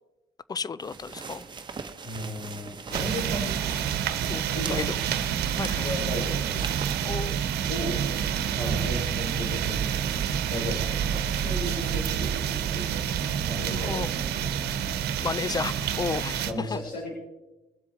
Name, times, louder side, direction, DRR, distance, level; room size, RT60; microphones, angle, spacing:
voice 1, 0.5-1.4 4.3-4.4 4.7-5.0 5.5-5.9 7.0-7.4 13.8-14.1 15.2-16.8, left 5 dB, 25° left, 0.4 m, -32 dB
sound 1, 0.8-7.1, right 5 dB, 25° right, 1.2 m, -41 dB
voice 2, 2.0-3.5 4.5-5.1 5.8-6.5 7.7-8.0 8.5-14.0 14.4-14.5 16.5-17.1, left 1 dB, 55° left, 4.4 m, -35 dB
sound 2, 2.9-16.5, right 8 dB, 75° right, 1.1 m, -28 dB
22.0 x 7.4 x 4.3 m
cardioid pair, 110°, 17 cm